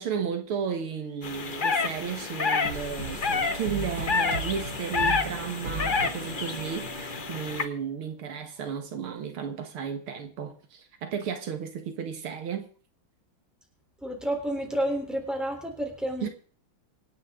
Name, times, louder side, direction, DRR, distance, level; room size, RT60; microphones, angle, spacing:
voice 1, 0.0-12.7 16.2-16.3, right 7 dB, 85° right, 2.4 m, -34 dB
sound 1, 1.2-7.6, left 4 dB, 35° left, 0.9 m, -29 dB
sound 2, 2.6-7.9, right 3 dB, 55° right, 2.8 m, -37 dB
voice 2, 14.0-16.3, right 1 dB, ahead, 3.6 m, -30 dB
26.0 x 9.2 x 3.8 m
omnidirectional pair, 2.3 m